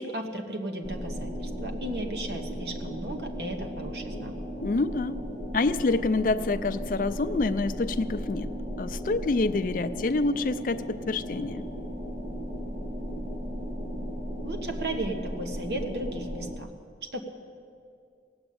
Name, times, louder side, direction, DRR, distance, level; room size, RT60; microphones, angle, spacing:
voice 1, 0.0-4.3 14.4-16.7 17.0-17.2, right 1 dB, 70° right, 4 dB, 1.3 m, -35 dB
sound 1, 0.8-16.6, equal, 45° right, 0.9 m, -36 dB
voice 2, 4.6-5.2 5.5-8.5 8.8-11.6, left 3 dB, 50° left, 12 dB, 0.4 m, -27 dB
17.5 x 8.0 x 8.6 m, 2.3 s
head